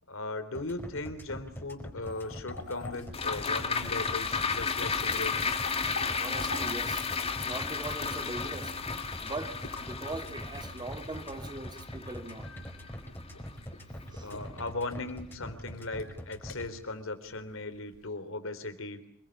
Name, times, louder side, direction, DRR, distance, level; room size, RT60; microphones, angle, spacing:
voice 1, 0.1-5.5 14.2-19.0, left 2 dB, 70° left, 3.5 m, -38 dB
sound 1, 0.5-16.7, equal, 10° left, 4.7 m, -43 dB
sound 2, 2.0-10.7 12.4-18.1, left 3 dB, 90° left, 3.8 m, -47 dB
sound 3, 3.1-13.6 14.0-14.1, left 5 dB, 30° left, 2.2 m, -33 dB
voice 2, 6.1-7.1 7.5-8.8 9.2-12.5 14.1-14.3, right 2 dB, 20° right, 2.4 m, -40 dB
27.5 x 21.5 x 9.9 m
head